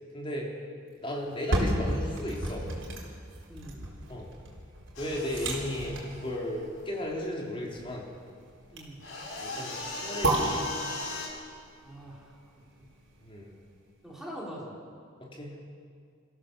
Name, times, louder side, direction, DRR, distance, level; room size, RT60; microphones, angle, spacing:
voice 1, 0.1-0.5 1.0-2.7 4.1-4.3 5.0-8.1 9.4-10.7 13.2-13.5 15.2-15.6, left 1 dB, 25° left, -2 dB, 3.6 m, -35 dB
sound 1, 1.2-13.3 13.7-13.8, right 1 dB, 70° right, 4.1 m, -34 dB
voice 2, 3.5-3.9 8.7-9.0 11.8-12.3 12.8-12.9 14.0-14.7, equal, ahead, -5 dB, 4.3 m, -43 dB
sound 2, 5.0-7.0 9.0-11.3, left 3 dB, 85° left, 5.0 m, -38 dB
25.5 x 15.0 x 7.1 m, 2.2 s
head